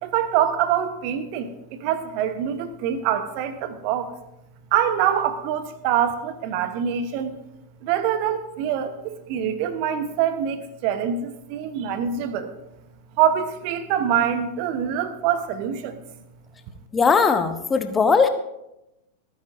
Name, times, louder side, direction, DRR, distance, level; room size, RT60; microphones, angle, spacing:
voice 1, 0.0-4.1 4.7-7.3 7.8-12.5 13.2-16.0, right 9 dB, 45° right, 11 dB, 1.1 m, -25 dB
voice 2, 16.9-18.3, left 5 dB, 15° left, 9 dB, 1.0 m, -19 dB
26.0 x 9.4 x 2.7 m, 0.88 s
figure-of-eight pair, 90°, 0 cm